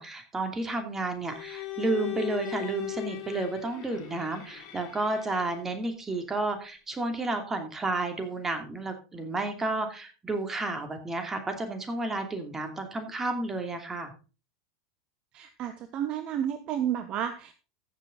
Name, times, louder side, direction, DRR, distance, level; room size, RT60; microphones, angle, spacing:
voice 1, 0.0-14.1, right 2 dB, 20° right, 6 dB, 2.7 m, -31 dB
Bowed string instrument, 1.2-5.8, left 16 dB, 55° left, 2.9 m, -38 dB
voice 2, 15.3-17.5, right 10 dB, 45° right, 10 dB, 0.9 m, -31 dB
15.0 x 7.0 x 3.9 m, 0.33 s
figure-of-eight pair, 85°, 2 cm